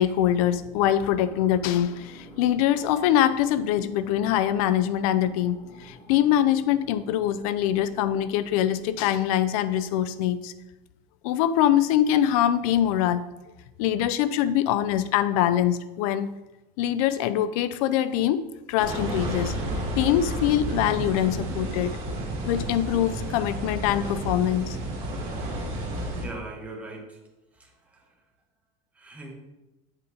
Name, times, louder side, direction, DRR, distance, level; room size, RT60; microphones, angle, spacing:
voice 1, 0.0-10.5 11.2-13.2 13.8-16.3 16.8-19.6 20.0-22.0 22.5-24.8, left 11 dB, 85° left, 14 dB, 0.5 m, -23 dB
sound 1, 0.6-9.1, left 1 dB, 50° left, 1.4 m, -49 dB
sound 2, 18.8-26.3, right 1 dB, 35° right, 2.6 m, -31 dB
voice 2, 26.2-27.2 27.5-28.2 28.9-29.3, right 2 dB, 10° right, -1 dB, 1.2 m, -41 dB
8.1 x 5.1 x 4.1 m, 1.0 s
cardioid pair, 170°, 18 cm